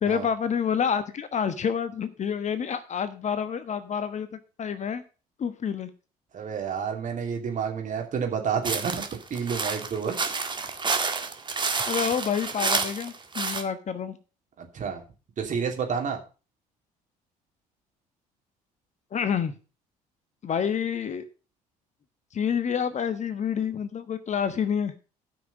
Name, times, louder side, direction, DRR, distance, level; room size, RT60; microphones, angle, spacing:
voice 1, 0.0-4.3 4.6-5.0 5.4-5.9 11.9-14.2 19.1-19.5 20.4-21.3 22.3-24.9, left 7 dB, 40° left, 12 dB, 1.2 m, -28 dB
voice 2, 6.3-9.0 9.3-10.2 14.6-15.0 15.4-16.2, right 6 dB, 40° right, 3 dB, 2.9 m, -29 dB
sound 1, 8.6-13.6, right 4 dB, 25° right, 1.7 m, -29 dB
13.0 x 6.1 x 5.3 m, 0.34 s
figure-of-eight pair, 55°, 19 cm